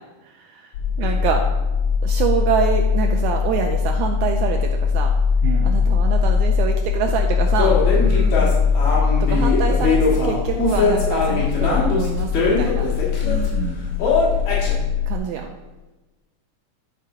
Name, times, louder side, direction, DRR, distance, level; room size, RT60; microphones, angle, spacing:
voice 1, 0.2-1.4 2.0-5.1 5.6-7.8 9.2-12.9 15.1-15.5, right 7 dB, 85° right, 3 dB, 1.7 m, -26 dB
sound 1, 0.7-15.2, left 5 dB, 85° left, 2.5 m, -21 dB
voice 2, 5.4-5.8 8.0-8.6 13.2-13.8, right 5 dB, 65° right, -3 dB, 1.8 m, -30 dB
sound 2, 7.6-13.5 14.0-14.7, left 4 dB, 60° left, 3.0 m, -21 dB
10.5 x 4.6 x 4.9 m, 1.1 s
omnidirectional pair, 3.8 m